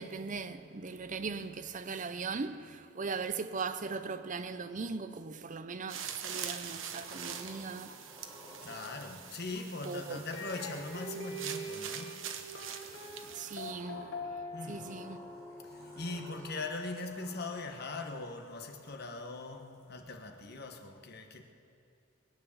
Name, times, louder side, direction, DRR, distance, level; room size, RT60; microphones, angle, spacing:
voice 1, 0.0-7.9 9.8-10.2 13.3-14.1 14.7-15.2 15.7-15.9, right 4 dB, 40° right, 0.6 m, -39 dB
Sliding door, 3.8-5.2 6.2-11.7 12.8-19.9, equal, 15° right, 5.1 m, -56 dB
sound 1, 5.9-13.7, right 8 dB, 80° right, 1.1 m, -44 dB
voice 2, 8.6-12.2 14.5-14.9 15.6-21.4, left 3 dB, 55° left, 1.3 m, -41 dB
sound 2, 10.3-17.4, equal, 75° left, 2.4 m, -44 dB
21.0 x 9.2 x 7.2 m
head